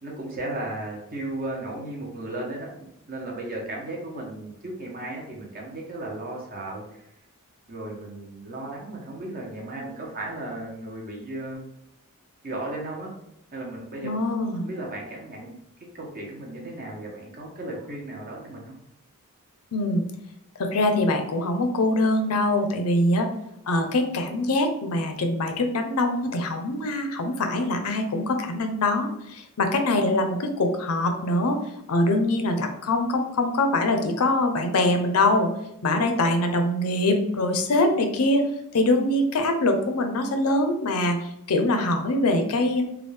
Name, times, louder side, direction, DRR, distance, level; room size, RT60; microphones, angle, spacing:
voice 1, 0.0-7.1 7.7-11.6 12.4-13.1 13.5-14.1 14.6-15.5 15.9-18.7, right 2 dB, 40° right, -1 dB, 0.9 m, -35 dB
voice 2, 14.0-14.6 19.7-20.0 20.6-23.3 23.7-31.6 31.9-35.5 35.8-38.5 38.7-41.2 41.5-42.8, left 2 dB, 75° left, 5 dB, 0.5 m, -23 dB
3.2 x 2.3 x 3.3 m, 0.81 s
head